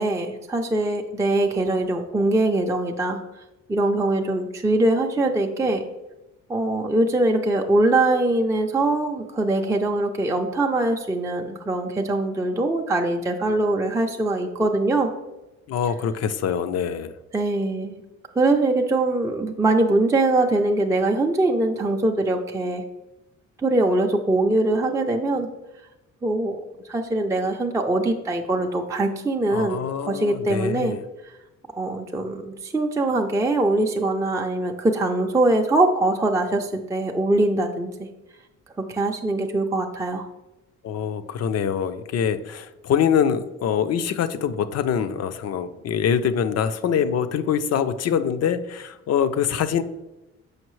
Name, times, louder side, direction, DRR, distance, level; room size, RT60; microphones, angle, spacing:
voice 1, 0.0-3.2 3.7-5.8 6.5-15.1 17.3-18.0 18.3-22.8 23.6-25.5 26.2-26.6 26.9-31.0 31.8-37.9 38.8-40.3, right 2 dB, 10° right, 2 dB, 0.4 m, -22 dB
voice 2, 15.7-17.2 29.5-31.0 40.8-49.8, left 8 dB, 55° left, 11 dB, 0.5 m, -24 dB
6.5 x 5.2 x 3.1 m, 1.0 s
cardioid pair, 90°, 30 cm